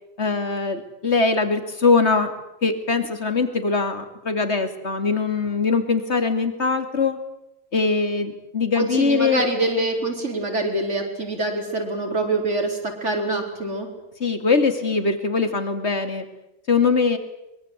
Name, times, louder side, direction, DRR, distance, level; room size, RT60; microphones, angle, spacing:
voice 1, 0.2-2.3 2.6-7.2 7.7-9.4 14.2-16.3 16.7-17.2, left 4 dB, 60° left, 8 dB, 2.9 m, -22 dB
voice 2, 8.8-13.9, right 2 dB, 65° right, 3 dB, 5.0 m, -25 dB
24.0 x 23.0 x 8.3 m, 0.89 s
omnidirectional pair, 1.3 m